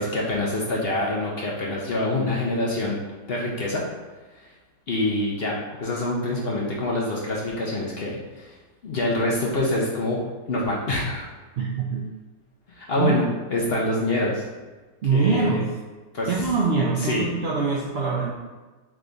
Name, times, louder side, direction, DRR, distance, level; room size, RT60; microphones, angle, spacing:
voice 1, 0.0-3.0 3.3-3.8 4.9-8.6 8.8-10.2 10.5-11.3 12.7-13.2 13.5-14.4 15.1-15.6 16.1-16.3 17.0-17.3, left 1 dB, 55° left, -3 dB, 0.7 m, -25 dB
voice 2, 11.6-12.1 13.0-13.3 15.0-15.7 16.3-18.3, right 4 dB, 75° right, -3 dB, 0.5 m, -24 dB
3.5 x 3.5 x 3.8 m, 1.3 s
omnidirectional pair, 1.7 m